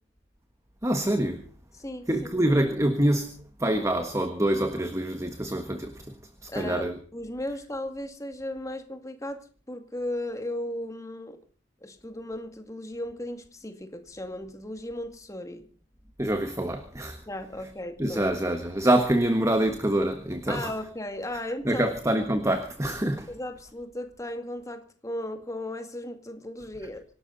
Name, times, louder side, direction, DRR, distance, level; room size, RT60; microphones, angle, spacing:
voice 1, 0.8-1.4 2.1-6.1 6.4-6.9 16.2-17.2 18.0-20.7 21.6-23.3, right 1 dB, 15° right, 1.4 m, -26 dB
voice 2, 6.5-11.4 11.8-15.6 17.3-18.3 20.5-22.0 23.3-27.0, left 1 dB, 15° left, 2.2 m, -36 dB
25.5 x 12.5 x 4.0 m
head